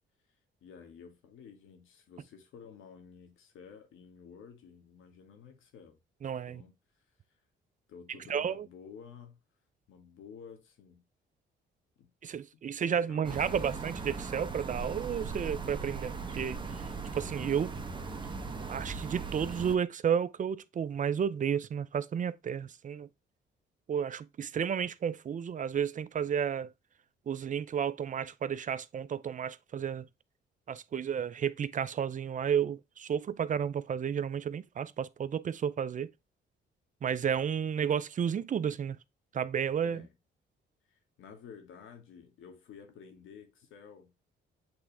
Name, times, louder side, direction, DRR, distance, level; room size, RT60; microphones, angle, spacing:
voice 1, 0.6-6.0 6.5-6.8 7.9-9.4 9.9-11.0 12.0-12.1 12.8-13.8 39.8-40.1 40.9-44.1, left 6 dB, 80° left, 1.9 m, -52 dB
voice 2, 6.2-6.6 8.3-8.7 12.2-16.8 17.1-17.7 18.6-23.1 23.9-26.7 27.3-30.0 30.7-36.1 37.0-39.0 39.3-40.0, right 8 dB, 40° right, 0.5 m, -32 dB
sound 1, 13.2-19.8, right 4 dB, 25° right, 1.2 m, -39 dB
8.0 x 3.6 x 3.4 m
cardioid pair, 90°, 20 cm